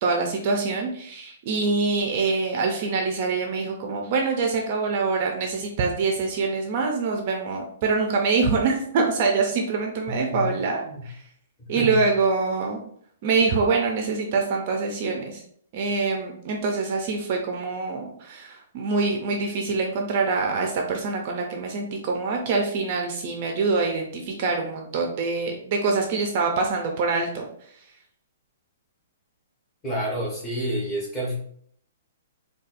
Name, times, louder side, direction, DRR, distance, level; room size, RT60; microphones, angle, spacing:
voice 1, 0.0-11.2 11.7-12.8 13.2-15.4 15.7-27.5, right 4 dB, 30° right, 2 dB, 0.4 m, -25 dB
voice 2, 10.1-10.5 10.8-11.1 11.6-12.0 29.8-31.4, equal, 15° left, -4 dB, 0.7 m, -29 dB
4.0 x 2.2 x 2.5 m, 0.63 s
hypercardioid pair, 175°, 0 cm